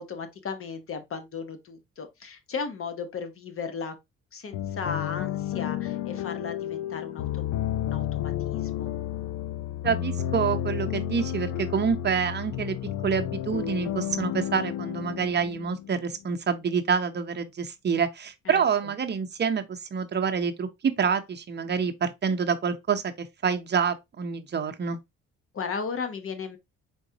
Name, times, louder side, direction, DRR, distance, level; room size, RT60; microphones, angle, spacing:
voice 1, 0.0-4.0 4.3-8.9 18.5-18.6 25.5-26.6, left 5 dB, 45° left, 0.8 m, -36 dB
sound 1, 4.5-16.2, left 11 dB, 70° left, 0.5 m, -31 dB
voice 2, 9.8-12.8 13.0-25.0, right 6 dB, 35° right, 0.7 m, -27 dB
3.9 x 3.7 x 2.7 m
cardioid pair, 90°, 30 cm